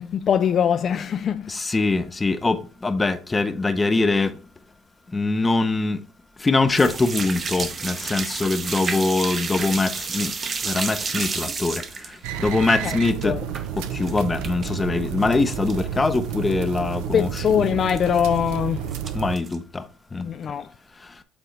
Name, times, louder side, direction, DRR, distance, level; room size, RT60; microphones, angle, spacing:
voice 1, 0.0-1.5 12.8-13.0 13.2-13.4 17.1-18.9 20.2-20.7, left 8 dB, 45° left, 0.3 m, -22 dB
voice 2, 1.5-4.3 5.1-6.0 6.4-10.3 10.6-11.8 12.4-13.3 13.9-17.4 19.1-19.8 20.1-20.2, left 3 dB, 20° left, 0.7 m, -23 dB
sound 1, 6.8-14.8 15.1-15.8 16.1-16.2 16.7-16.8 16.9-17.2 18.0-18.5 18.9-19.6, right 5 dB, 35° right, 0.8 m, -31 dB
sound 2, 12.2-19.4, right 9 dB, 85° right, 0.6 m, -31 dB
8.0 x 3.8 x 3.2 m
cardioid pair, 105°, 0 cm